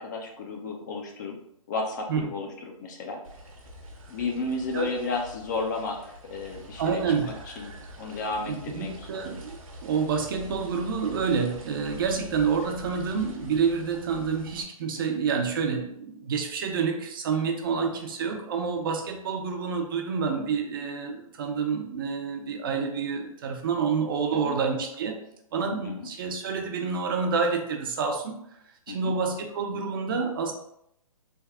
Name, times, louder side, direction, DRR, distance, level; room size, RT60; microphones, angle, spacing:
voice 1, 0.0-1.4 1.7-3.2 4.1-7.1 7.5-8.9 15.0-15.2 24.3-24.6 25.8-26.1 28.9-29.1, left 3 dB, 30° left, 2 dB, 0.4 m, -33 dB
sound 1, 3.2-14.6, equal, 65° right, 0.9 m, -45 dB
voice 2, 6.8-7.8 8.5-25.2 25.5-28.3 28.9-30.5, right 5 dB, 35° right, 3 dB, 0.5 m, -28 dB
3.5 x 2.3 x 3.4 m, 0.73 s
hypercardioid pair, 155°, 19 cm